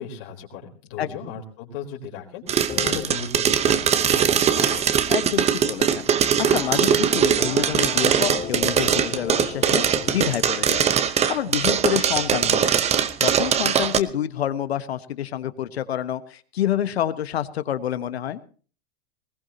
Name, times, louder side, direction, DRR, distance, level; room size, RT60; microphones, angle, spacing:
voice 1, 0.0-4.5, left 6 dB, 55° left, 0 dB, 4.1 m, -37 dB
sound 1, 2.5-14.0, right 8 dB, 20° right, 0.9 m, -21 dB
sound 2, 2.7-3.0 4.6-4.8 6.4-6.8 7.4-10.2, left 6 dB, 20° left, 3.2 m, -34 dB
voice 2, 5.1-12.8 13.2-18.4, left 11 dB, 80° left, 12 dB, 1.4 m, -28 dB
20.0 x 18.5 x 2.9 m, 0.39 s
hypercardioid pair, 120°, 31 cm